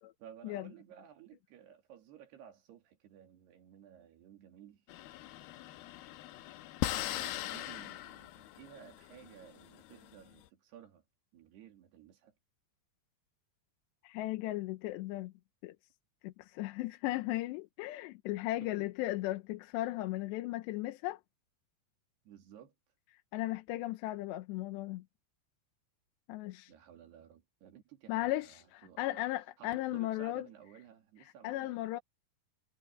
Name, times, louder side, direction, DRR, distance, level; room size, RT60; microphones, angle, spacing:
voice 1, 0.2-4.8 7.0-11.0 11.3-12.3 18.6-19.1 22.2-22.7 26.7-29.1 29.6-31.9, right 9 dB, 70° right, 4.5 m, -55 dB
sound 1, 4.9-10.4, left 14 dB, 75° left, 2.5 m, -40 dB
voice 2, 14.0-15.3 15.6-15.8 16.2-21.2 23.3-25.0 26.3-26.7 28.1-30.5 31.4-32.0, left 16 dB, 90° left, 3.1 m, -36 dB
omnidirectional pair, 4.9 m